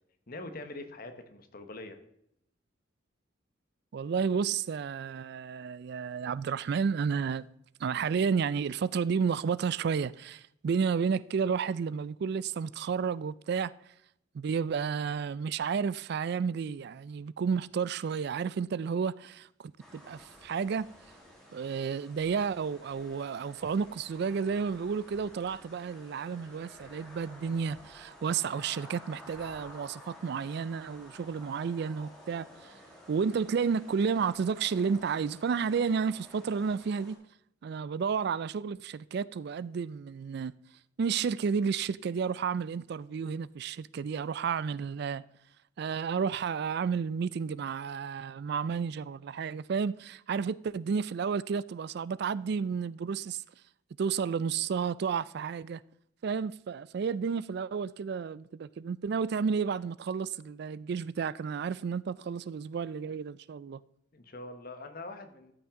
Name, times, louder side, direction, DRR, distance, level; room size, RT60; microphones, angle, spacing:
voice 1, 0.3-2.0 64.1-65.5, left 2 dB, 50° left, 1.1 m, -43 dB
voice 2, 3.9-7.5 7.8-13.7 14.3-20.9 21.5-32.5 33.1-37.2 37.6-40.6 41.0-45.2 45.8-53.4 54.0-55.8 56.2-63.8, right 6 dB, 55° right, 0.3 m, -31 dB
sound 1, 19.8-37.2, left 1 dB, 5° left, 2.0 m, -52 dB
13.5 x 6.0 x 3.7 m
head